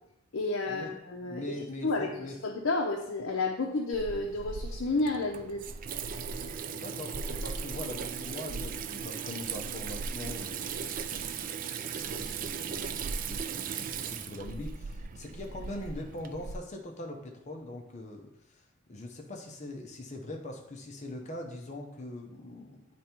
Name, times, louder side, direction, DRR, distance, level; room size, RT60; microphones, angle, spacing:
voice 1, 0.3-1.6 1.8-5.6, left 3 dB, 70° left, 0 dB, 0.7 m, -31 dB
voice 2, 1.2-2.4 6.7-11.1 11.4-11.5 11.9-22.9, left 1 dB, 35° left, 2 dB, 0.7 m, -42 dB
Water tap faucet / Sink (filling or washing), 3.9-16.6, right 6 dB, 40° right, 0.3 m, -37 dB
9.2 x 3.4 x 4.4 m, 0.85 s
head